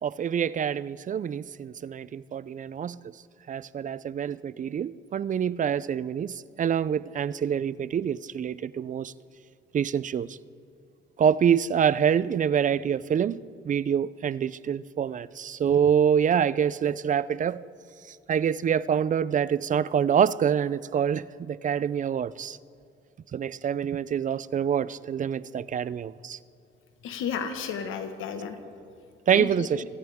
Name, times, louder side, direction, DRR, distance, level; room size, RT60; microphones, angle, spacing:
voice 1, 0.0-3.0 3.5-9.1 9.7-10.4 11.2-13.4 13.6-17.7 18.1-22.6 23.3-26.4 29.3-29.8, right 8 dB, 40° right, 0.5 m, -26 dB
voice 2, 27.0-28.6 29.3-29.9, left 7 dB, 85° left, 1.5 m, -33 dB
25.5 x 14.0 x 3.6 m
cardioid pair, 90°, 20 cm